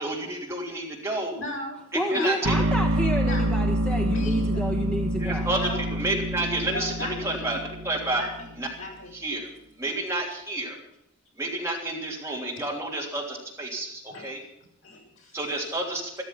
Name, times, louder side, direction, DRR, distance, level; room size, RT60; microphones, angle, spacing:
voice 1, 0.0-1.3 1.9-2.6 5.2-8.2 8.6-8.7 9.1-9.5 9.8-10.8 11.4-14.4 15.3-16.2, right 2 dB, 10° right, -2 dB, 3.3 m, -30 dB
voice 2, 1.3-1.8 2.1-2.3 3.3-3.5 4.1-4.6 5.6-5.8 6.7-7.5 8.1-8.4 8.8-9.1 14.1-14.3 14.8-15.4, left 1 dB, 70° left, -2 dB, 7.4 m, -36 dB
voice 3, 1.9-5.5, equal, 5° left, 2 dB, 1.1 m, -30 dB
sound 1, 2.4-8.5, right 1 dB, 70° right, 1.0 m, -27 dB
14.0 x 14.0 x 5.8 m, 0.80 s
head